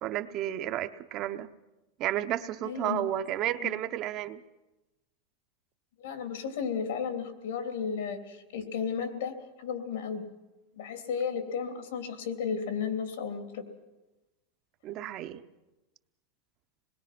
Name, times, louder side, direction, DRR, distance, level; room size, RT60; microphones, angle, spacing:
voice 1, 0.0-1.5 2.0-4.4 14.8-15.4, right 12 dB, 35° right, 10 dB, 0.7 m, -32 dB
voice 2, 2.6-3.0 3.6-3.7 6.0-9.3 9.6-10.2 10.8-13.6, left 6 dB, 80° left, 6 dB, 3.0 m, -33 dB
26.5 x 20.5 x 6.0 m, 1.0 s
supercardioid pair, 170°, 0 cm